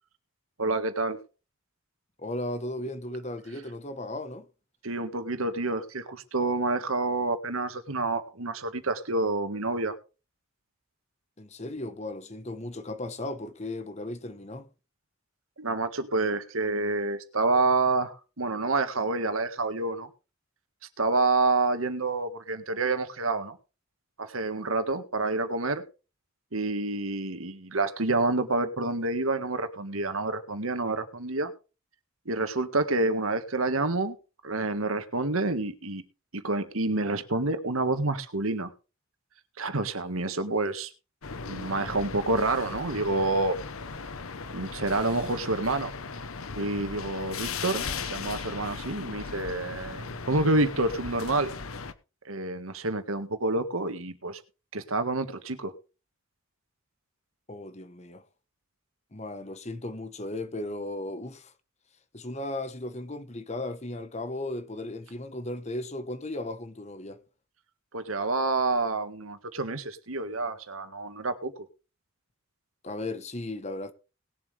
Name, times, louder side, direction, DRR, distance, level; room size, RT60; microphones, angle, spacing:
voice 1, 0.6-1.2 4.8-10.0 15.6-20.1 21.0-23.6 24.2-25.8 26.5-31.5 32.3-34.2 34.4-36.0 36.3-38.7 39.6-40.9 41.5-43.6 44.5-45.9 46.6-51.5 52.3-54.4 54.7-55.7 67.9-71.7, right 2 dB, 85° right, 1.8 m, -28 dB
voice 2, 2.2-4.5 11.4-14.7 57.5-58.2 59.1-61.5 62.1-67.2 72.8-73.9, left 1 dB, 30° left, 1.2 m, -36 dB
sound 1, 41.2-51.9, left 5 dB, 85° left, 1.1 m, -37 dB
20.0 x 7.6 x 3.4 m
head